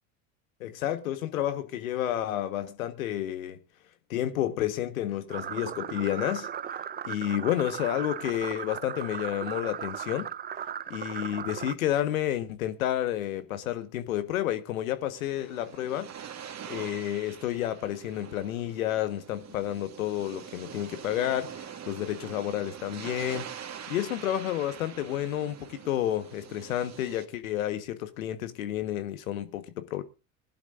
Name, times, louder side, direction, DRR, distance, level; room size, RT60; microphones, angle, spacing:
voice 1, 0.6-3.6 4.1-6.5 7.0-10.3 10.9-16.1 16.7-23.5 23.9-30.0, left 12 dB, 75° left, 1.5 m, -30 dB
sound 1, 5.3-11.7, right 8 dB, 25° right, 0.7 m, -37 dB
sound 2, 15.0-27.2, right 8 dB, 40° right, 2.1 m, -44 dB
21.0 x 11.5 x 2.6 m
hypercardioid pair, 70°, 42 cm